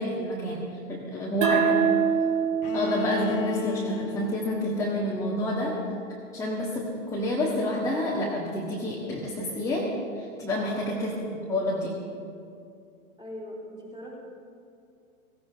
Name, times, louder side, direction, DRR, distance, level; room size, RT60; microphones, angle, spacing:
voice 1, 0.0-1.6 2.7-5.8 6.3-11.1 11.5-12.0, left 1 dB, 5° left, -5 dB, 1.8 m, -29 dB
voice 2, 1.4-1.9 10.9-11.5 13.2-14.2, left 1 dB, 10° right, -4 dB, 3.8 m, -42 dB
sound 1, 1.4-4.6, right 6 dB, 60° right, 1.7 m, -26 dB
Bowed string instrument, 2.6-6.5, left 9 dB, 35° left, 1.0 m, -36 dB
17.0 x 16.5 x 3.6 m, 2.5 s
hypercardioid pair, 120°, 43 cm